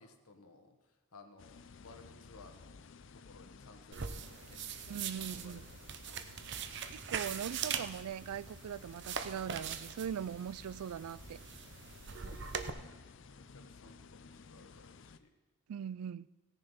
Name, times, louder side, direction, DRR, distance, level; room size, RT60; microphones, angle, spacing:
voice 1, 0.0-2.8 3.1-6.1 12.1-13.0 13.4-15.3, left 3 dB, 80° left, 1.3 m, -58 dB
sound 1, 1.4-15.2, left 4 dB, 55° left, 0.5 m, -56 dB
sound 2, 3.9-12.7, right 7 dB, 50° right, 0.7 m, -42 dB
voice 2, 4.9-5.7 6.9-11.4 15.7-16.3, right 8 dB, 90° right, 0.3 m, -41 dB
16.5 x 6.8 x 5.5 m
head